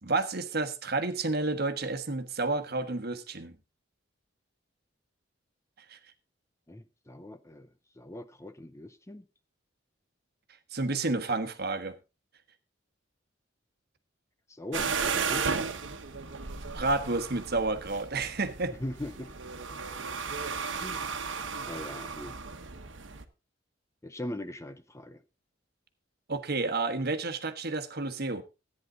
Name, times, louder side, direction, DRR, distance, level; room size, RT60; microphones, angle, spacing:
voice 1, 0.0-3.5 5.9-6.0 10.7-12.0 16.7-18.7 26.3-28.4, right 3 dB, 55° right, 1.3 m, -30 dB
voice 2, 6.7-7.7 8.0-9.3 14.5-15.7 18.8-19.3 20.8-21.2 21.7-22.4 24.0-25.2, left 1 dB, 15° left, 0.6 m, -40 dB
sound 1, 14.7-23.2, right 5 dB, 75° right, 1.3 m, -35 dB
14.0 x 9.6 x 3.8 m
head